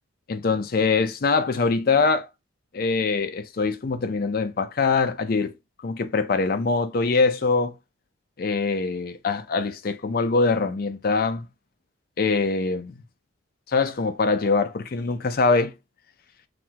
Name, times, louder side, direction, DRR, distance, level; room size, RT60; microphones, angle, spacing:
voice 1, 0.3-2.3 2.7-5.5 5.8-7.7 8.4-11.5 12.2-12.9 13.7-15.7, left 4 dB, 45° left, 0.4 m, -23 dB
5.9 x 2.3 x 2.8 m
head